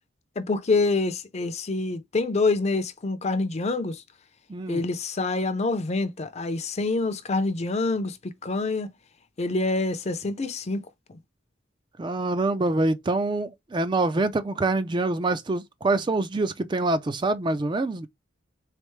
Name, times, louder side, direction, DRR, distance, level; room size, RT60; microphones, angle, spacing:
voice 1, 0.4-4.0 4.7-8.9 9.4-11.2, left 3 dB, 35° left, 0.5 m, -26 dB
voice 2, 4.5-4.8 12.0-18.1, right 2 dB, 25° right, 0.4 m, -25 dB
3.9 x 3.3 x 3.1 m
head